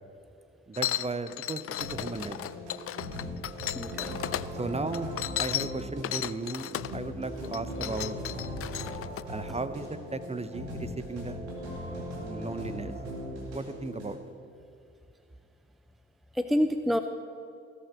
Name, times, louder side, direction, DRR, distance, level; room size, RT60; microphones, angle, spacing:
sound 1, 0.7-4.5 4.9-7.0 7.4-9.2, left 12 dB, 45° left, 0.5 m, -34 dB
voice 1, 0.7-2.4 4.6-8.2 9.3-11.4 11.8-13.0 13.5-14.2, right 3 dB, 20° right, 12 dB, 0.9 m, -36 dB
sound 2, 1.8-14.1, equal, 90° right, 2.3 m, -39 dB
voice 2, 3.7-4.2 16.3-17.0, equal, ahead, 8 dB, 0.6 m, -27 dB
17.5 x 6.8 x 6.1 m, 2.6 s
hypercardioid pair, 50°, 32 cm